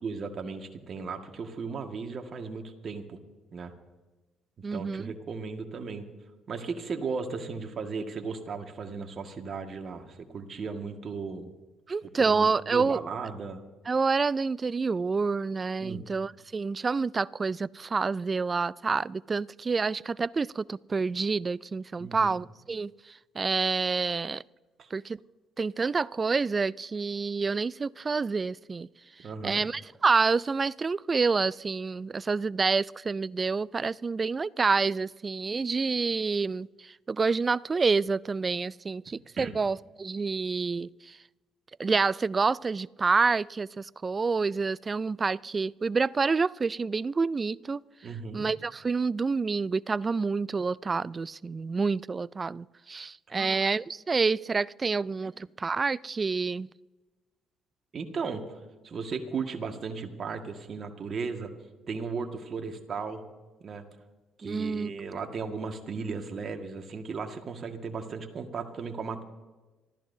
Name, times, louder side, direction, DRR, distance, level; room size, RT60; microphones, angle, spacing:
voice 1, 0.0-3.2 3.5-3.7 4.7-6.0 6.5-11.5 12.0-13.6 15.8-16.1 22.0-22.4 24.8-24.9 29.2-29.6 39.1-39.6 48.0-48.5 53.3-53.7 55.2-55.3 57.9-61.5 61.9-63.2 63.6-63.8 64.4-69.2, right 5 dB, 50° right, 4 dB, 1.9 m, -36 dB
voice 2, 4.6-5.1 11.9-13.0 13.9-24.4 24.9-25.2 25.6-28.9 29.4-41.2 41.8-47.8 48.3-56.7 64.4-64.9, right 4 dB, 35° right, 22 dB, 0.4 m, -28 dB
26.0 x 14.0 x 2.8 m, 1.2 s
hypercardioid pair, 55°, 0 cm